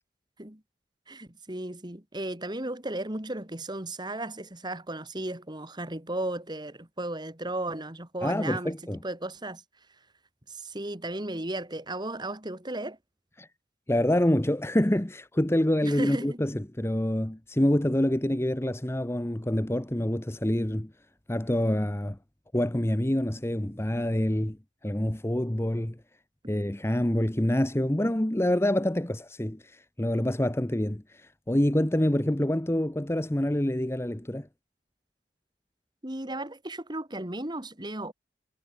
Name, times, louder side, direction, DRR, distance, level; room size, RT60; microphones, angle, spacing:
voice 1, 1.1-8.7 9.0-9.6 10.5-13.0 15.8-16.4 36.0-38.1, right 1 dB, 25° right, 2.8 m, -35 dB
voice 2, 8.2-9.0 13.4-13.5 13.9-20.9 21.3-22.2 22.5-24.6 24.8-26.0 26.5-34.5, left 1 dB, 15° left, 0.9 m, -26 dB
head